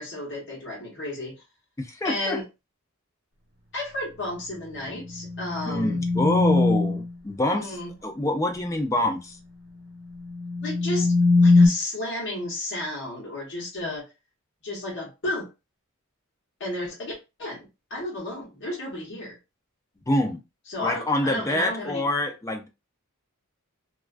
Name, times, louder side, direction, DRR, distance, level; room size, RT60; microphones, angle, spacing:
voice 1, 0.0-1.3 2.0-2.4 3.7-6.0 7.5-7.9 10.6-14.1 14.6-15.5 16.6-19.4 20.7-22.0, left 1 dB, 55° left, 0.9 m, -33 dB
voice 2, 1.8-2.4 5.7-7.7 8.0-9.4 20.1-20.4 20.8-22.7, left 1 dB, 15° left, 0.4 m, -26 dB
sound 1, 4.8-7.1 10.1-11.7, left 3 dB, 50° right, 0.9 m, -21 dB
2.3 x 2.2 x 2.4 m
head